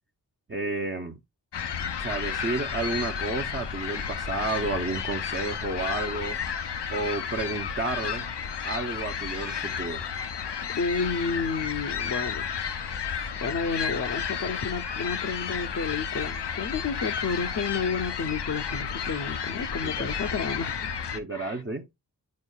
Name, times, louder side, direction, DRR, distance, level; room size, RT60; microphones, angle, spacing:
voice 1, 0.5-1.2 2.0-6.4 6.9-8.3 8.6-10.1 19.8-20.1 21.1-21.9, right 2 dB, 30° right, 0.6 m, -31 dB
sound 1, 1.5-21.2, left 7 dB, 85° left, 0.7 m, -32 dB
voice 2, 10.8-21.6, left 5 dB, 50° left, 0.6 m, -31 dB
9.5 x 4.5 x 2.2 m
wide cardioid pair, 60°, 41 cm